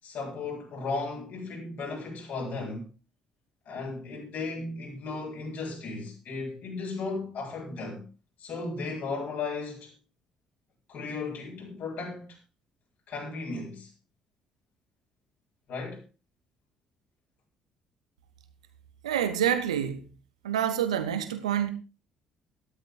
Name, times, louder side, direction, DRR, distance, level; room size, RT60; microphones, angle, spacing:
voice 1, 0.0-2.9 3.7-8.0 8.4-9.9 10.9-12.4 13.1-13.9 15.7-16.0, left 3 dB, 55° left, 7.8 m, -35 dB
voice 2, 19.0-20.1 20.4-21.7, right 9 dB, 75° right, 1.4 m, -27 dB
15.0 x 13.0 x 3.8 m
figure-of-eight pair, 50°, 3 cm